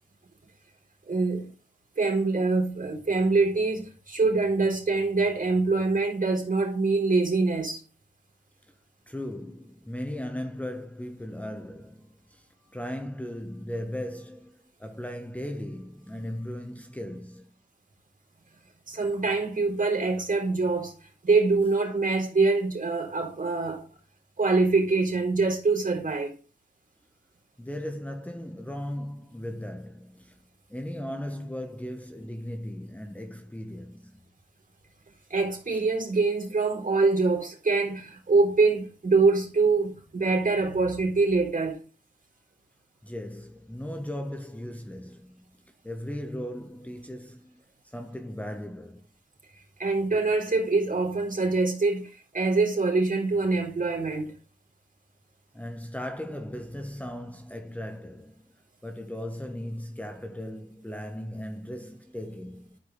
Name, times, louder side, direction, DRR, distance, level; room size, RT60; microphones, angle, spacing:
voice 1, 1.1-1.5 2.0-7.8 18.9-20.9 21.2-23.9 24.4-26.3 35.3-41.8 49.8-54.3, right 3 dB, 45° right, 3.9 m, -24 dB
voice 2, 9.1-17.5 27.6-30.4 30.7-34.1 35.7-35.8 43.0-49.1 55.5-58.5 58.8-62.8, left 1 dB, 10° left, 1.3 m, -37 dB
12.5 x 5.1 x 3.9 m
cardioid pair, 60°, 19 cm